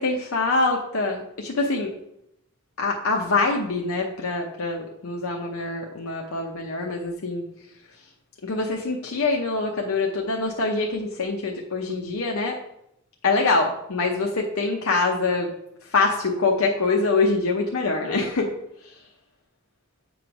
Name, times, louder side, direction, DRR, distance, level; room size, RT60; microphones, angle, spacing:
voice 1, 0.0-1.9 2.8-7.4 8.4-12.6 13.2-15.5 15.9-18.5, left 3 dB, 80° left, 0 dB, 0.7 m, -24 dB
8.5 x 3.1 x 5.1 m, 0.79 s
head